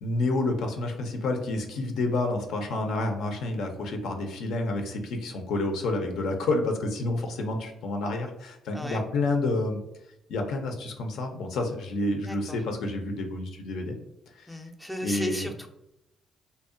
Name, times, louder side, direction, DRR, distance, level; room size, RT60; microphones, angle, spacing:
voice 1, 0.0-9.8 10.3-14.0 14.3-14.6 15.0-15.5, left 2 dB, 80° left, 4 dB, 0.4 m, -29 dB
voice 2, 12.2-12.6 14.5-15.7, equal, 5° left, 4 dB, 0.3 m, -35 dB
2.7 x 2.0 x 2.5 m, 0.84 s
cardioid pair, 90°, 0 cm